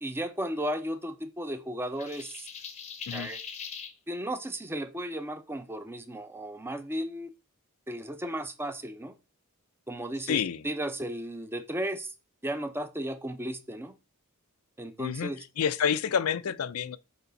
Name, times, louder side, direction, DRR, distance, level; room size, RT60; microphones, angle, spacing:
voice 1, 0.0-2.5 3.1-3.4 4.1-7.3 7.9-9.1 9.9-12.1 12.4-13.9 14.8-15.4, right 1 dB, 10° right, 0.6 m, -35 dB
sound 1, 2.0-3.9, left 6 dB, 30° left, 0.8 m, -41 dB
voice 2, 10.3-10.6 15.0-15.3 15.6-17.0, left 7 dB, 70° left, 0.4 m, -28 dB
6.9 x 4.3 x 4.0 m
head